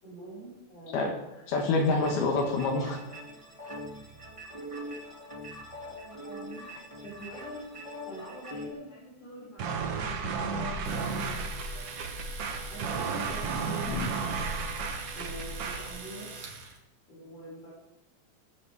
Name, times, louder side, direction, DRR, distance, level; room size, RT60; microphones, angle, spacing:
voice 1, 0.0-1.4 3.6-4.1 4.5-4.6 5.9-6.8 7.0-7.7 8.0-11.9 12.7-14.5 15.1-16.3 17.1-17.7, right 1 dB, 50° left, -8 dB, 7.2 m, -45 dB
voice 2, 1.5-3.0 13.9-14.1, left 3 dB, 70° left, 2 dB, 3.3 m, -27 dB
sound 1, 1.5-8.7, equal, 20° right, 0.8 m, -43 dB
sound 2, 9.6-15.9, right 4 dB, 80° right, 1.3 m, -33 dB
Domestic sounds home sounds, 10.8-16.8, right 4 dB, 50° right, 2.2 m, -43 dB
19.0 x 14.0 x 3.5 m, 0.94 s
omnidirectional pair, 4.7 m